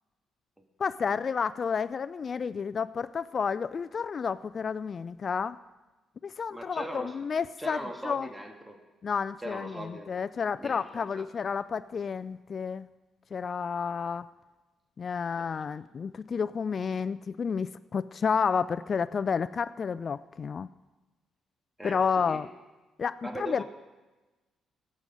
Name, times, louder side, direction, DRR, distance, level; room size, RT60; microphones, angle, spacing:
voice 1, 0.8-5.6 6.2-8.3 9.0-12.9 13.3-14.3 15.0-20.7 21.8-22.5 23.0-23.6, left 6 dB, 45° left, 13 dB, 0.3 m, -31 dB
voice 2, 6.5-7.2 7.6-8.8 9.4-10.1 10.6-11.3 15.3-15.5 21.8-22.4 23.2-23.6, right 1 dB, 10° right, 3 dB, 1.7 m, -39 dB
16.5 x 7.6 x 5.3 m, 1.2 s
cardioid pair, 90°, 0 cm